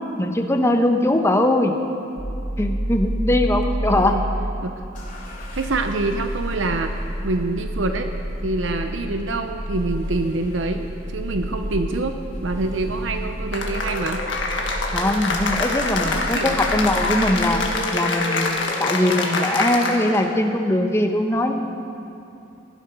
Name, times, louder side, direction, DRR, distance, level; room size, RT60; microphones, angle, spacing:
voice 1, 0.2-1.7 2.6-4.1 14.9-17.6 17.9-21.5, left 1 dB, 15° left, 4 dB, 0.9 m, -21 dB
sound 1, 2.2-17.7, right 1 dB, 25° right, 1.1 m, -30 dB
sound 2, 4.9-17.8, left 1 dB, 45° left, 3.2 m, -44 dB
voice 2, 5.5-6.9 7.2-8.1 8.4-14.2 16.0-16.6, right 2 dB, 75° right, 6 dB, 0.7 m, -26 dB
Cheering / Applause, 13.5-20.2, left 3 dB, 70° left, 1.6 m, -25 dB
16.0 x 11.5 x 5.5 m, 2.6 s
head